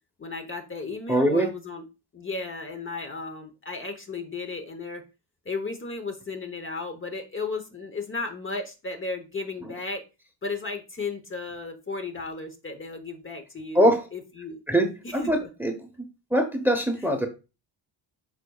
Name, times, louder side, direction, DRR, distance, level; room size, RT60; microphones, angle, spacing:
voice 1, 0.2-1.8 2.1-5.0 5.4-10.0 10.4-14.6 15.0-15.5, left 3 dB, 25° left, 5 dB, 1.0 m, -34 dB
voice 2, 1.1-1.5 9.6-9.7 13.7-14.1 14.7-15.9 16.3-17.3, equal, 5° right, 5 dB, 0.9 m, -23 dB
11.5 x 4.1 x 2.3 m, 0.28 s
cardioid pair, 130°, 45 cm